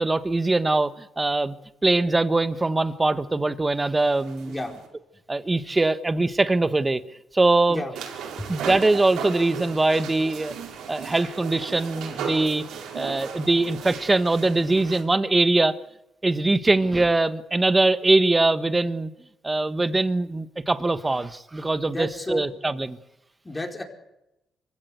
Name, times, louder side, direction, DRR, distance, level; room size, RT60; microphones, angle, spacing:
voice 1, 0.0-1.5 1.8-4.6 5.3-7.0 7.3-7.8 8.5-10.5 10.9-12.6 12.9-15.8 16.2-19.1 19.4-23.0, right 2 dB, 20° right, 12 dB, 1.4 m, -22 dB
sound 1, 4.0-4.9 8.0-15.0, right 6 dB, 85° right, 5.0 m, -36 dB
voice 2, 21.9-22.4 23.4-23.8, left 2 dB, 20° left, 2 dB, 4.7 m, -31 dB
25.0 x 16.0 x 8.2 m, 0.88 s
cardioid pair, 90°, 0 cm